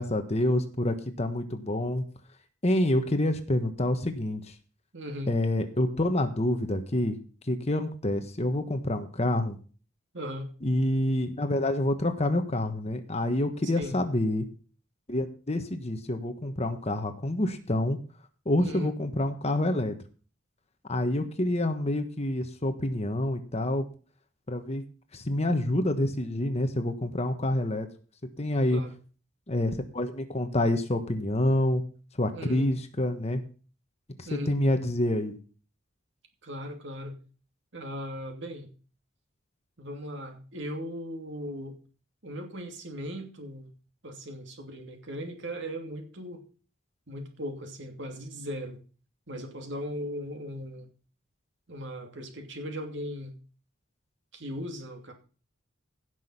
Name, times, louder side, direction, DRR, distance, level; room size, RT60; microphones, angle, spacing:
voice 1, 0.0-2.0 2.6-4.5 5.3-7.2 7.5-9.6 10.6-14.4 15.1-18.0 18.4-19.9 20.9-23.9 24.5-24.8 25.1-27.9 28.4-28.8 29.5-31.8 32.1-33.4 34.2-35.4, left 1 dB, 35° left, 8 dB, 1.4 m, -27 dB
voice 2, 4.9-5.4 10.1-10.5 13.6-14.0 18.6-18.9 28.7-29.0 32.3-32.7 34.2-34.6 36.4-37.2 37.7-38.7 39.8-41.8 42.2-43.8 44.0-46.4 47.1-48.8 49.3-50.9 51.7-53.3 54.3-55.1, equal, 65° right, 4 dB, 2.7 m, -38 dB
16.5 x 6.3 x 5.8 m, 0.38 s
head